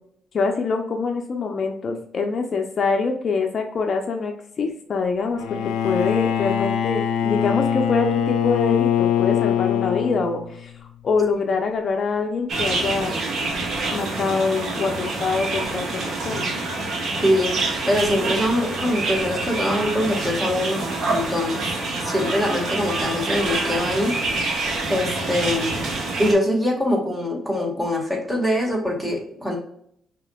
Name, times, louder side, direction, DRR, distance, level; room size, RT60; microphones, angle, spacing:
voice 1, 0.3-10.7 11.0-13.1 13.9-15.9 16.2-16.5, left 4 dB, 50° left, 4 dB, 0.6 m, -24 dB
Bowed string instrument, 5.4-10.6, left 9 dB, 90° left, 0.3 m, -22 dB
sound 1, 12.5-26.3, right 2 dB, 60° right, 1.3 m, -26 dB
voice 2, 17.2-21.7 22.0-24.1 24.9-25.8 26.2-29.6, left 1 dB, 10° right, -1 dB, 1.6 m, -23 dB
5.5 x 3.0 x 2.3 m, 0.69 s
cardioid pair, 90°, 0 cm